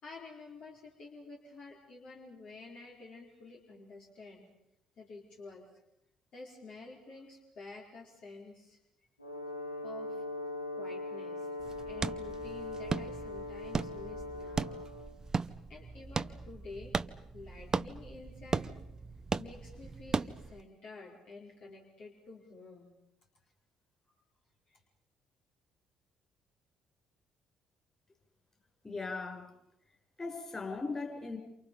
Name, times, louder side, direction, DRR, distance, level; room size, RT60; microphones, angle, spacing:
voice 1, 0.0-4.5 5.0-5.7 6.3-8.8 9.8-10.2 10.7-11.5 11.9-14.8 15.7-17.0 17.3-18.7 19.4-22.9 24.7-24.8, left 3 dB, 50° left, -2 dB, 4.7 m, -50 dB
Brass instrument, 9.2-15.2, left 2 dB, 90° left, 1.8 m, -41 dB
sound 1, 11.6-20.6, right 4 dB, 30° right, 0.9 m, -37 dB
voice 2, 28.8-29.5 30.2-31.4, left 3 dB, 25° left, 3 dB, 7.2 m, -38 dB
29.5 x 28.5 x 5.5 m, 0.80 s
figure-of-eight pair, 45°, 2 cm